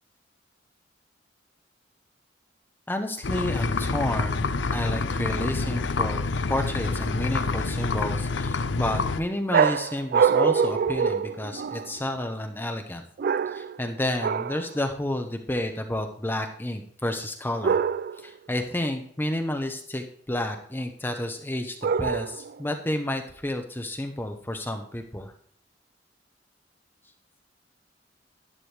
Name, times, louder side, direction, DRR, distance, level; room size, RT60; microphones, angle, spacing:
voice 1, 2.9-13.0 13.5-17.8 18.2-25.3, left 1 dB, 10° left, 4 dB, 0.8 m, -30 dB
sound 1, 3.2-9.2, left 3 dB, 80° left, 0.6 m, -27 dB
sound 2, 9.5-12.0 13.2-13.8 14.2-14.7 17.6-18.3 21.8-22.6, right 6 dB, 55° right, 0.3 m, -24 dB
11.5 x 9.8 x 3.3 m, 0.62 s
head